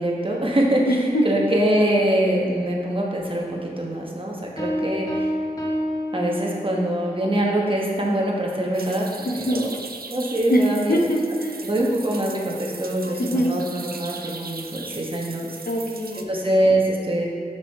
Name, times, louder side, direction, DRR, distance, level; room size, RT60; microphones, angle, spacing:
voice 1, 0.0-5.3 6.1-9.7 10.1-11.0 11.5-15.6 16.1-17.3, right 1 dB, 35° right, -2 dB, 1.2 m, -24 dB
voice 2, 0.9-1.2 9.2-9.6 10.5-10.6 10.9-11.6 13.2-13.5 15.7-16.2, equal, 65° left, 0 dB, 0.8 m, -22 dB
sound 1, 4.6-7.0, equal, 20° left, 1.2 m, -28 dB
sound 2, 8.7-16.2, right 4 dB, 65° right, 0.5 m, -39 dB
6.1 x 6.0 x 3.4 m, 2.1 s
wide cardioid pair, 40°, 16 cm